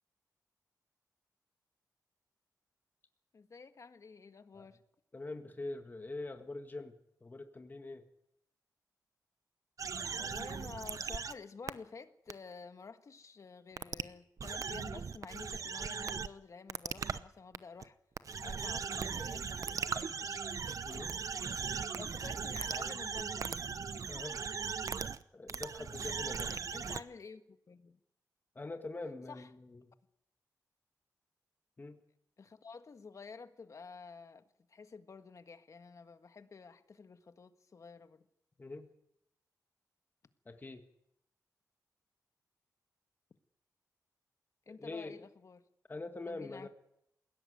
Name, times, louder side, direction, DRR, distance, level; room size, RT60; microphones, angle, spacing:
voice 1, 3.3-4.8 10.2-18.0 18.4-20.5 21.9-23.6 26.7-28.0 29.3-29.5 32.4-38.2 44.7-45.6 46.3-46.7, left 5 dB, 50° left, 1.6 m, -51 dB
voice 2, 5.1-8.0 20.8-21.2 24.1-24.4 25.3-26.7 28.6-29.9 31.8-32.0 38.6-38.9 40.5-40.8 44.7-45.3 45.9-46.7, left 2 dB, 30° left, 1.9 m, -44 dB
sound 1, 9.8-11.3 11.7-11.8 12.3-12.4 13.8-14.0 14.4-16.3 16.7-17.2 17.5-17.8 18.2-25.2 25.5-27.0, right 5 dB, 55° right, 0.8 m, -38 dB
21.0 x 17.0 x 9.5 m
wide cardioid pair, 95°, 7 cm